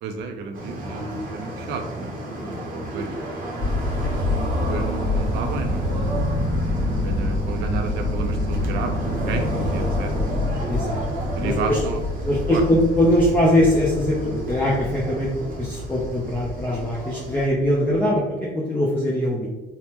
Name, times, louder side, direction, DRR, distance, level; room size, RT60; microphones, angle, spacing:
voice 1, 0.0-2.1 2.4-3.1 4.7-6.2 6.7-8.9 9.3-10.4 11.4-12.0 12.5-12.6 18.1-18.2, right 4 dB, 85° right, 5 dB, 0.5 m, -32 dB
sound 1, 0.5-17.5, equal, 55° right, 0.7 m, -31 dB
sound 2, 3.6-18.2, left 2 dB, 45° left, 1.5 m, -28 dB
voice 2, 5.9-6.3 6.6-7.1 10.7-11.0 11.4-11.8 12.2-19.5, equal, 10° left, -5 dB, 0.5 m, -22 dB
3.3 x 2.1 x 2.9 m, 1.2 s
cardioid pair, 110°, 17 cm